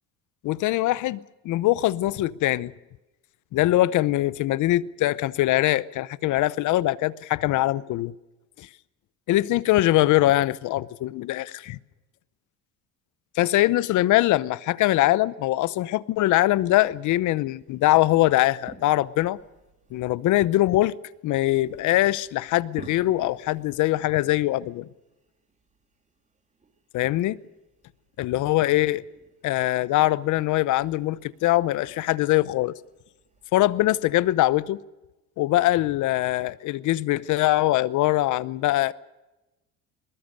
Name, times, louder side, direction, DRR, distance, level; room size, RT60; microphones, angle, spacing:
voice 1, 0.4-1.2 1.4-2.7 3.5-8.1 8.6-8.7 9.3-11.8 13.4-19.4 19.9-21.0 21.2-24.9 26.9-27.4 28.2-29.0 29.4-32.7 33.5-34.8 35.4-38.9, left 16 dB, 55° left, 0.8 m, -22 dB
sound 1, 16.3-34.6, right 4 dB, 20° right, 3.0 m, -54 dB
22.0 x 20.5 x 6.6 m
cardioid pair, 140°, 35 cm